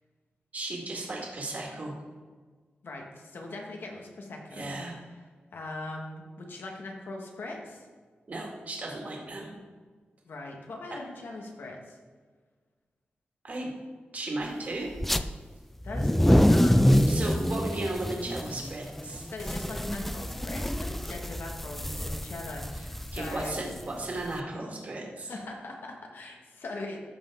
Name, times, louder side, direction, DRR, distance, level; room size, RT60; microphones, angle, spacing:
voice 1, 0.5-2.0 4.5-4.9 8.3-9.5 13.4-13.7 14.1-14.9 16.9-19.3 23.1-25.4, right 2 dB, 45° right, -2 dB, 2.1 m, -35 dB
voice 2, 2.8-5.0 5.5-7.8 10.2-12.0 15.8-17.1 19.1-23.6 25.1-27.0, left 2 dB, 75° left, 1 dB, 1.7 m, -41 dB
sound 1, 14.9-15.2 15.8-24.3, equal, 5° left, 0.3 m, -26 dB
13.5 x 5.8 x 3.8 m, 1.5 s
wide cardioid pair, 135°, 4 cm